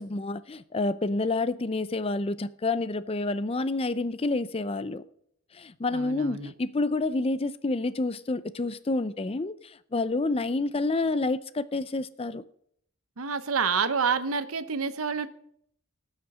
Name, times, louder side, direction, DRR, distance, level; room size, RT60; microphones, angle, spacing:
voice 1, 0.0-5.0 5.5-12.4, left 2 dB, 25° left, 0.5 m, -29 dB
voice 2, 5.9-6.5 13.2-15.3, right 5 dB, 80° right, 1.0 m, -28 dB
18.0 x 6.5 x 6.2 m
head